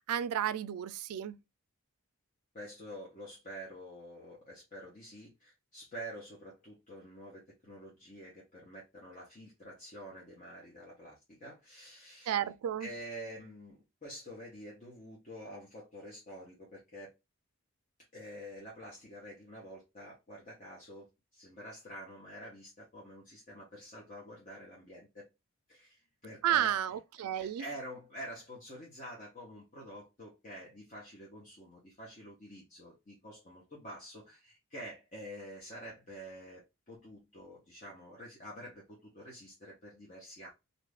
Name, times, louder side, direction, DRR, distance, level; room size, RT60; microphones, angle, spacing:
voice 1, 0.1-1.4 12.3-12.9 26.4-27.6, right 10 dB, 80° right, 0.3 m, -32 dB
voice 2, 2.5-12.4 12.8-17.1 18.1-21.1 21.3-25.3 25.7-26.7 27.4-40.5, equal, 35° left, 0.7 m, -48 dB
2.5 x 2.4 x 3.3 m
head